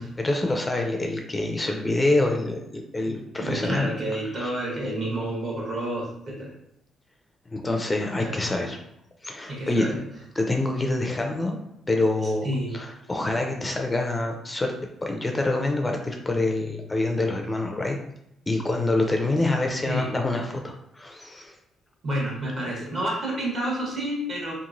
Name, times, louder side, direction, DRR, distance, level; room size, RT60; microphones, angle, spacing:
voice 1, 0.2-3.9 4.4-4.5 7.5-8.8 9.2-9.9 10.4-11.6 11.9-12.5 12.7-14.7 15.0-18.0 18.5-21.5, left 2 dB, 20° left, 2 dB, 0.4 m, -26 dB
voice 2, 3.0-6.5 8.2-8.4 9.5-10.0 12.2-12.9 19.9-20.1 22.0-24.5, right 1 dB, 50° right, -4 dB, 1.2 m, -30 dB
2.9 x 2.5 x 2.5 m, 0.78 s
cardioid pair, 90°, 0 cm